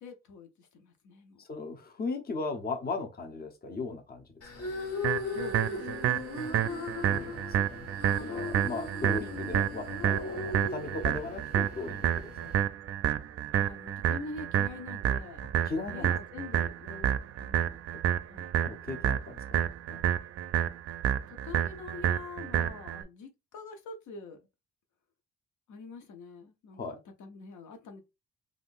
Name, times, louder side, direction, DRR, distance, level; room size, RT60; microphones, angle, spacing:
voice 1, 0.0-1.4 5.3-6.0 8.2-8.5 13.5-15.5 15.9-17.8 18.3-18.5 21.3-24.4 25.7-28.0, left 3 dB, 75° left, 0.7 m, -45 dB
voice 2, 1.4-4.3 7.1-7.9 8.2-12.5 15.6-16.2 18.6-20.0 26.7-27.0, left 3 dB, 30° left, 0.7 m, -37 dB
sound 1, 4.4-12.6, left 3 dB, 50° left, 1.4 m, -38 dB
sound 2, 5.0-23.0, right 10 dB, 50° right, 0.4 m, -30 dB
3.5 x 2.5 x 2.5 m
cardioid pair, 90°, 30 cm